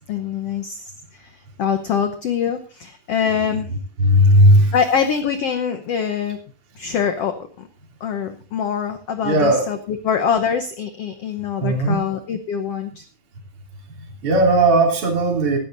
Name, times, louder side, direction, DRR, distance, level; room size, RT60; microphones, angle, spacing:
voice 1, 0.0-1.3 1.6-3.7 4.7-6.4 6.8-7.7 8.0-13.0, left 7 dB, 85° left, 8 dB, 1.3 m, -24 dB
voice 2, 4.0-4.8 9.2-9.7 11.6-12.0 14.0-15.6, right 1 dB, 40° right, 0 dB, 3.8 m, -16 dB
19.0 x 13.5 x 2.7 m, 0.37 s
omnidirectional pair, 4.2 m